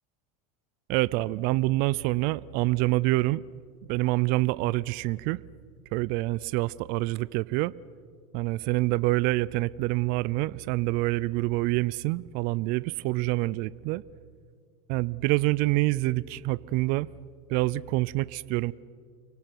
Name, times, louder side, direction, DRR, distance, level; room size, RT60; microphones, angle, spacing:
voice 1, 0.9-3.4 3.8-5.4 5.9-7.7 8.3-14.0 14.9-17.1 17.5-18.7, right 20 dB, 50° right, 0.6 m, -26 dB
30.0 x 24.0 x 6.1 m
supercardioid pair, 120°, 19 cm